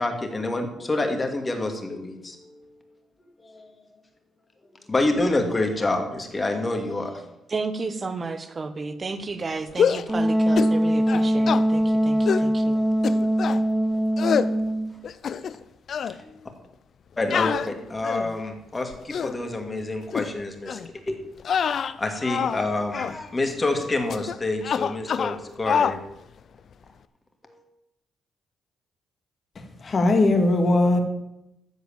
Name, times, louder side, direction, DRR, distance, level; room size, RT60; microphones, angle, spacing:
voice 1, 0.0-2.6 3.4-3.7 4.9-7.2 16.2-16.4 17.2-20.8 21.1-21.2 21.6-26.0 27.5-27.6, left 2 dB, 25° left, 4 dB, 2.3 m, -27 dB
voice 2, 7.5-12.8, right 4 dB, 35° right, 11 dB, 1.3 m, -32 dB
sound 1, 9.7-10.1 10.6-10.8 11.1-11.6 12.3-12.5 13.0-13.6 14.2-14.5 15.0-15.6 15.9-16.1 17.3-18.4 18.9-19.4 20.1-20.3 20.7-20.9 21.4-22.6 22.9-23.2 24.1-24.4 24.6-25.4 25.7-26.0, left 7 dB, 55° left, 0.6 m, -25 dB
Wind instrument woodwind instrument, 10.1-14.9, equal, 10° right, 1.5 m, -22 dB
voice 3, 29.8-31.0, left 2 dB, 40° left, 5 dB, 2.2 m, -19 dB
13.5 x 5.0 x 9.0 m, 0.88 s
cardioid pair, 90°, 0 cm